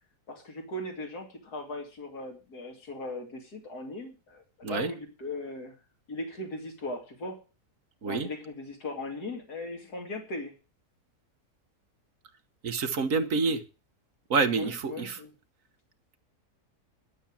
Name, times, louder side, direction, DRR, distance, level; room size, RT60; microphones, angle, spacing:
voice 1, 0.3-5.7 6.1-7.4 8.1-10.5 14.5-15.3, left 2 dB, 70° left, 1 dB, 3.0 m, -38 dB
voice 2, 12.6-13.6 14.3-15.2, right 4 dB, 60° right, 8 dB, 1.4 m, -27 dB
12.0 x 7.1 x 7.2 m, 0.33 s
omnidirectional pair, 1.7 m